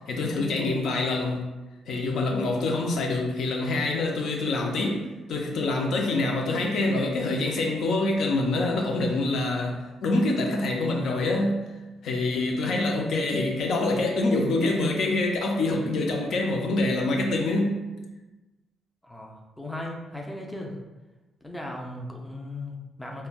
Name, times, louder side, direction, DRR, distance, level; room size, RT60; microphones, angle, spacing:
voice 1, 0.1-1.5 1.9-11.6 12.0-17.8, left 2 dB, 70° left, 1 dB, 0.4 m, -26 dB
voice 2, 19.0-20.8 21.4-23.3, left 1 dB, 10° left, 0 dB, 0.4 m, -37 dB
3.1 x 2.1 x 2.3 m, 1.1 s
cardioid pair, 90°, 0 cm